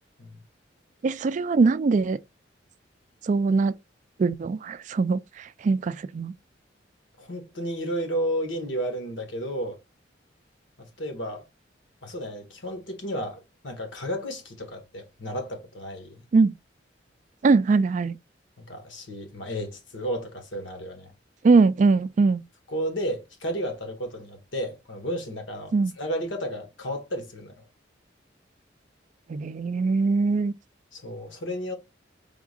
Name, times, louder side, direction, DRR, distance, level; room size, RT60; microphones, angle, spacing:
voice 1, 1.0-2.2 3.2-3.8 4.2-6.3 16.3-16.5 17.4-18.2 21.4-22.4 25.7-25.9 29.3-30.5, right 4 dB, 40° right, 0.3 m, -22 dB
voice 2, 7.2-9.8 10.8-11.4 12.0-16.2 18.6-21.1 22.7-27.7 30.9-31.7, equal, 85° left, 1.4 m, -32 dB
4.8 x 3.6 x 2.4 m
head